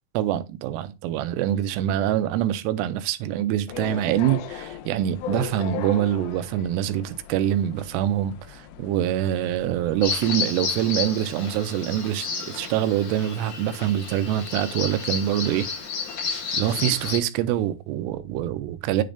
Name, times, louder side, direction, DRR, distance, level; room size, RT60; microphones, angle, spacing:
voice 1, 0.1-15.7 16.6-19.0, right 12 dB, 85° right, 2.8 m, -25 dB
sound 1, 3.7-10.3, left 10 dB, 80° left, 2.3 m, -38 dB
Bird vocalization bird call bird song, 10.0-17.2, left 5 dB, 55° left, 3.1 m, -31 dB
9.4 x 3.9 x 3.4 m
omnidirectional pair, 4.8 m